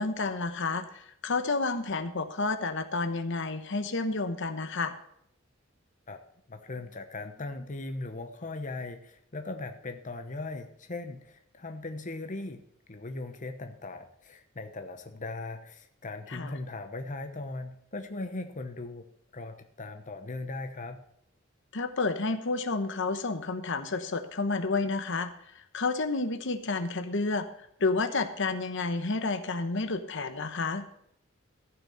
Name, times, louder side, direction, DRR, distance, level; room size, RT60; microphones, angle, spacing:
voice 1, 0.0-4.9 16.3-16.6 21.7-25.3 25.7-27.5 27.8-30.8, left 3 dB, 65° left, 9 dB, 1.0 m, -30 dB
voice 2, 6.5-12.6 12.9-19.0 19.3-21.0, left 2 dB, 40° left, 6 dB, 1.0 m, -39 dB
14.5 x 6.0 x 6.5 m, 0.71 s
head